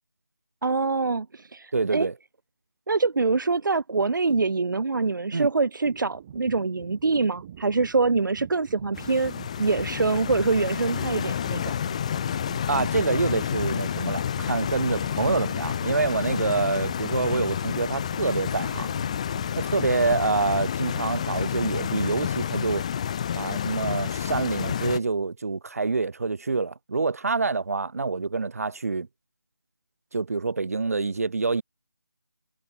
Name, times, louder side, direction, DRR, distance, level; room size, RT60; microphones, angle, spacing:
voice 1, 0.6-2.1 2.9-9.3 9.6-11.7, right 4 dB, 80° right, 0.4 m, -25 dB
voice 2, 1.7-2.2 5.3-5.5 12.7-18.9 19.5-22.9 23.3-29.1 30.1-31.6, right 4 dB, 50° right, 1.3 m, -26 dB
sound 1, 5.8-20.1, right 10 dB, 10° right, 0.4 m, -46 dB
Stream, 8.9-25.0, left 8 dB, 20° left, 0.8 m, -29 dB
figure-of-eight pair, 160°, 11 cm